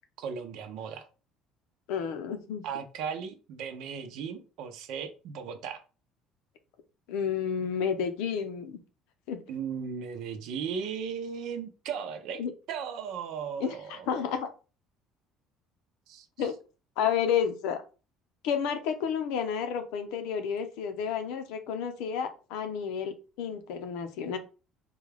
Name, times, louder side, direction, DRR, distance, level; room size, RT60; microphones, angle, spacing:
voice 1, 0.2-1.1 2.6-5.8 9.5-14.3 16.1-16.5, right 7 dB, 70° right, 7 dB, 0.6 m, -37 dB
voice 2, 1.9-2.6 7.1-8.8 9.3-9.4 12.4-12.5 13.6-14.5 16.4-16.5 17.0-17.8 18.4-24.4, left 7 dB, 85° left, 7 dB, 0.7 m, -31 dB
3.9 x 2.3 x 3.3 m, 0.34 s
cardioid pair, 140°, 0 cm